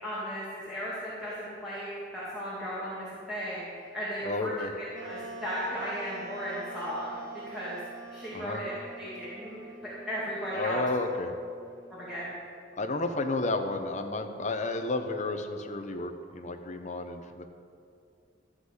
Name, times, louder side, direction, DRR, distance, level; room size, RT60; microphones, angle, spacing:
voice 1, 0.0-7.1 7.5-7.8 8.1-9.6 10.1-10.8 11.9-12.3, equal, ahead, -10 dB, 2.5 m, -36 dB
voice 2, 4.2-4.7 8.3-8.6 10.5-11.3 12.8-17.5, left 2 dB, 40° left, 5 dB, 0.9 m, -32 dB
Wind instrument woodwind instrument, 4.9-12.4, right 2 dB, 90° right, 1.1 m, -46 dB
13.5 x 6.0 x 8.1 m, 2.4 s
head